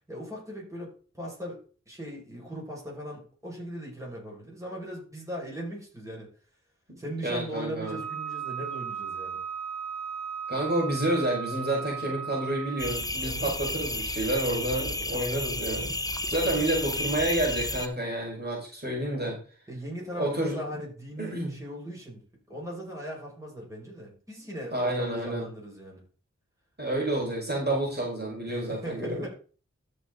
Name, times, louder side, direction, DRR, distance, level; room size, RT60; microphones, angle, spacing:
voice 1, 0.1-1.6 1.9-6.3 7.0-9.4 13.2-13.5 16.2-16.7 19.7-22.2 22.5-26.0 28.5-29.3, equal, 10° right, -4 dB, 5.9 m, -39 dB
voice 2, 6.9-8.0 10.5-16.0 16.3-19.4 20.1-20.6 21.2-21.5 24.7-25.5 26.8-29.3, right 1 dB, 35° right, -4 dB, 5.3 m, -29 dB
Wind instrument woodwind instrument, 7.8-13.1, right 7 dB, 60° right, 2.9 m, -36 dB
sound 1, 12.8-17.9, left 1 dB, 10° left, 1.0 m, -32 dB
13.5 x 5.9 x 4.0 m, 0.38 s
wide cardioid pair, 65°, 29 cm